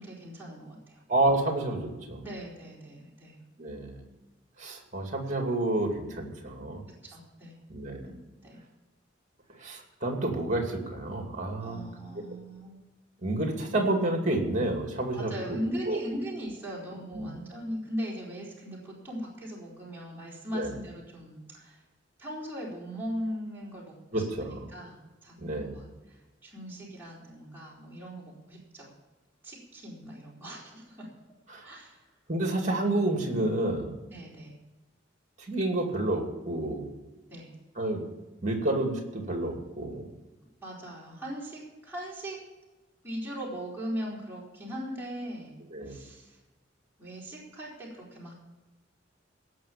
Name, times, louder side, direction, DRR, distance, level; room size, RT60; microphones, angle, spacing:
voice 1, 0.0-1.0 2.2-3.4 7.0-7.6 8.4-8.6 11.5-12.8 15.1-21.8 22.2-29.0 29.4-31.1 31.6-32.1 34.1-34.5 37.3-37.5 40.6-42.4 43.0-45.6 45.8-46.4 47.0-48.3, equal, 10° right, -6 dB, 4.5 m, -39 dB
voice 2, 1.1-2.2 3.6-4.0 4.6-6.8 7.7-8.1 9.6-11.9 12.2-12.3 13.2-15.3 15.9-16.0 17.1-17.3 20.5-20.7 24.1-24.7 25.4-25.8 31.5-31.6 32.3-33.9 35.5-36.8 37.8-38.0 38.4-40.1 45.7-46.0, right 2 dB, 40° right, 3 dB, 2.6 m, -29 dB
17.5 x 6.4 x 8.7 m, 1.1 s
head